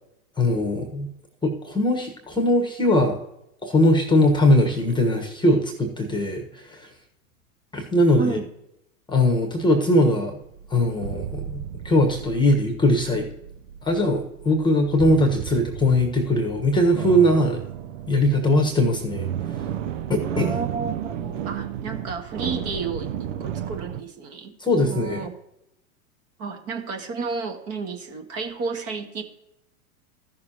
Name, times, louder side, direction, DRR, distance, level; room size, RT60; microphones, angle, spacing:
voice 1, 0.4-1.1 1.4-3.2 3.6-6.9 7.7-8.4 9.1-10.4 10.7-13.3 13.8-17.6 18.1-19.3 20.1-20.5 24.6-25.3, left 1 dB, 10° left, 4 dB, 1.3 m, -20 dB
voice 2, 8.2-8.5 20.3-25.3 26.4-29.2, right 4 dB, 35° right, 4 dB, 1.7 m, -32 dB
sound 1, 10.4-24.0, right 9 dB, 60° right, 0.8 m, -33 dB
14.5 x 6.5 x 2.9 m, 0.81 s
hypercardioid pair, 105°, 44 cm